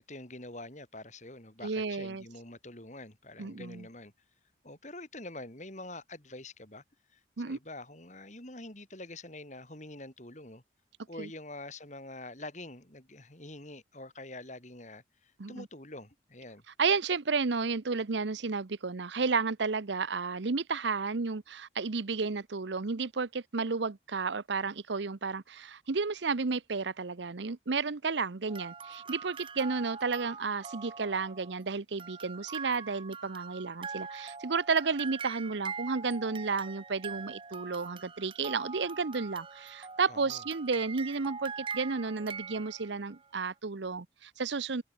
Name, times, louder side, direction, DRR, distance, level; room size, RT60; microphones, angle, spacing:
voice 1, 0.0-4.1 4.6-6.8 7.1-10.6 11.1-16.6 40.1-40.4, left 2 dB, 40° left, 4.5 m, -46 dB
voice 2, 1.6-2.2 3.4-3.9 7.4-7.6 11.2-11.3 15.4-15.7 16.8-44.8, right 4 dB, 75° right, 0.8 m, -32 dB
sound 1, 28.5-31.6 32.0-43.2, right 5 dB, 25° right, 0.9 m, -43 dB
head